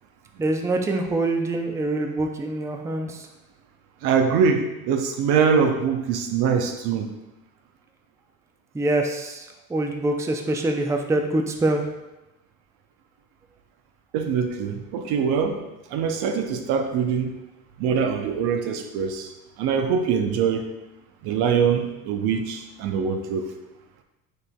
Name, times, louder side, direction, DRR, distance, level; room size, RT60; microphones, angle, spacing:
voice 1, 0.4-3.2 8.7-11.8, right 2 dB, 10° right, 4 dB, 0.4 m, -25 dB
voice 2, 4.0-7.1 14.1-15.6 15.9-17.3 17.8-19.3 19.6-20.7 21.2-23.4, right 6 dB, 65° right, 5 dB, 0.7 m, -23 dB
5.4 x 3.8 x 2.2 m, 0.98 s
hypercardioid pair, 65°, 40 cm